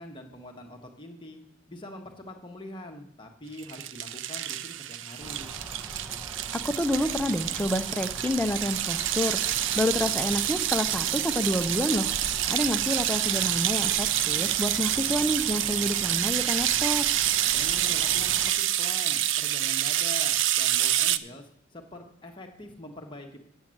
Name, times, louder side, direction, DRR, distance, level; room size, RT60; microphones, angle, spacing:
voice 1, 0.0-1.4 1.7-5.5 17.4-23.4, left 1 dB, 25° left, 2 dB, 1.0 m, -43 dB
sound 1, 3.6-21.2, right 12 dB, 70° right, 0.4 m, -27 dB
sound 2, 5.2-18.5, right 1 dB, 10° right, 0.9 m, -42 dB
voice 2, 6.6-12.1 12.5-17.1, left 1 dB, 10° left, 7 dB, 0.5 m, -28 dB
8.1 x 7.1 x 7.6 m, 0.79 s
head